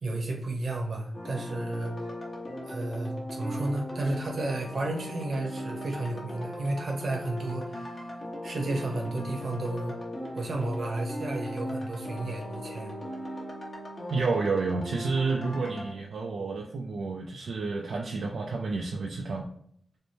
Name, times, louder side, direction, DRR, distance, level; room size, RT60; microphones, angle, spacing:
voice 1, 0.0-1.9 2.6-7.9 8.4-10.0 10.3-12.9, right 2 dB, 65° right, 2 dB, 0.9 m, -32 dB
sound 1, 1.1-15.9, equal, 35° left, 1.0 m, -38 dB
voice 2, 14.1-19.5, right 4 dB, 80° right, 0 dB, 0.4 m, -30 dB
3.3 x 2.1 x 4.1 m, 0.68 s
wide cardioid pair, 85°, 0 cm